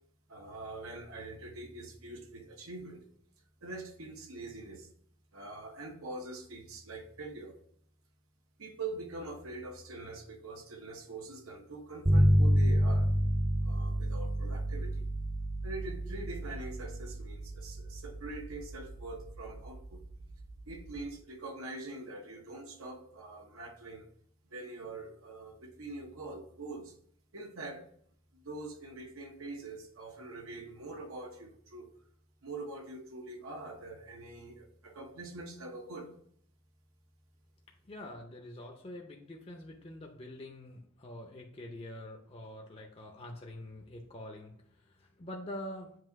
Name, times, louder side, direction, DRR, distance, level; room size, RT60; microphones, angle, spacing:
voice 1, 0.3-3.0 3.6-4.9 5.3-7.6 8.6-13.1 13.6-15.1 15.6-20.0 20.7-24.1 24.5-26.9 27.3-27.8 28.3-31.9 32.4-36.1, right 2 dB, 80° right, 3 dB, 1.0 m, -44 dB
sound 1, 12.0-21.0, equal, 20° right, 0.5 m, -30 dB
voice 2, 37.9-45.9, left 1 dB, 25° left, 1 dB, 0.5 m, -45 dB
7.7 x 2.8 x 4.6 m, 0.65 s
head